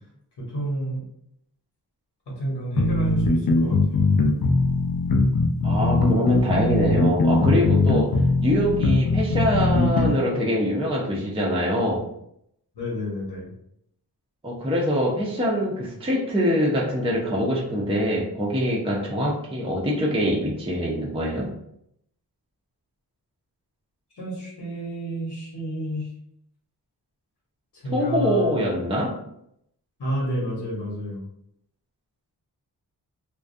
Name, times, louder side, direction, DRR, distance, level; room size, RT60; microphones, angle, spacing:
voice 1, 0.4-1.0 2.4-4.1 12.7-13.5 24.1-26.1 27.8-28.7 30.0-31.2, equal, 85° left, -5 dB, 1.0 m, -30 dB
sound 1, 2.8-10.1, left 2 dB, 65° left, 0.5 m, -20 dB
voice 2, 5.6-12.1 14.4-21.5 27.9-29.2, equal, 15° right, -4 dB, 0.5 m, -24 dB
2.3 x 2.2 x 2.5 m, 0.74 s
wide cardioid pair, 90°, 40 cm